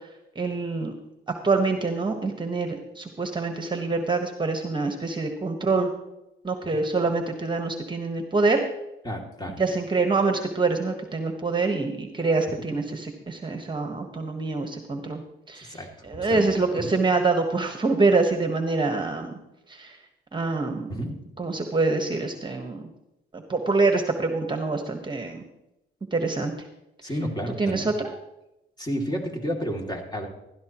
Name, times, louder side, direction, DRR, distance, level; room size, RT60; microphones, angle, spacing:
voice 1, 0.3-0.9 1.4-5.9 6.4-8.6 9.6-15.2 15.5-19.3 19.7-20.0 20.3-20.9 21.4-22.8 23.3-25.4 26.1-26.5 27.5-28.1, right 3 dB, 25° right, 5 dB, 1.4 m, -25 dB
voice 2, 9.0-9.6 12.6-12.7 15.7-15.9 16.1-16.5 16.8-16.9 20.9-21.1 27.0-27.9 28.8-30.3, equal, 20° left, 1 dB, 2.7 m, -31 dB
15.0 x 12.5 x 3.1 m, 0.90 s
cardioid pair, 90°, 20 cm